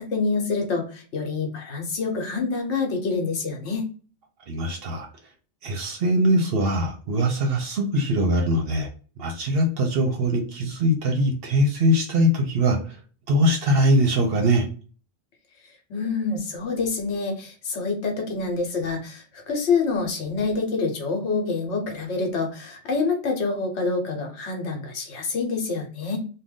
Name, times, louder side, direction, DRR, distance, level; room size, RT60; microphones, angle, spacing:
voice 1, 0.0-3.9 15.9-26.2, left 4 dB, 70° left, 2 dB, 1.1 m, -27 dB
voice 2, 4.5-5.1 5.6-8.9 9.2-12.8 13.3-14.7, equal, 60° right, 3 dB, 0.7 m, -22 dB
2.5 x 2.2 x 3.5 m, 0.38 s
omnidirectional pair, 1.3 m